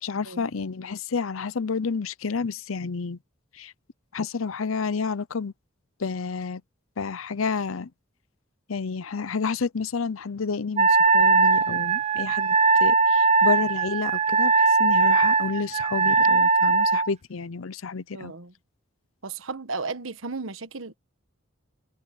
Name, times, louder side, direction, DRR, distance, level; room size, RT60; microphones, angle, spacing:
voice 1, 0.0-3.2 3.5-3.7 4.1-5.5 6.0-6.6 7.0-7.9 8.7-18.3, left 5 dB, 85° left, 0.7 m, -30 dB
Wind instrument woodwind instrument, 10.8-17.1, right 4 dB, 35° right, 0.7 m, -20 dB
voice 2, 18.1-18.5 19.2-20.9, right 4 dB, 80° right, 1.4 m, -34 dB
head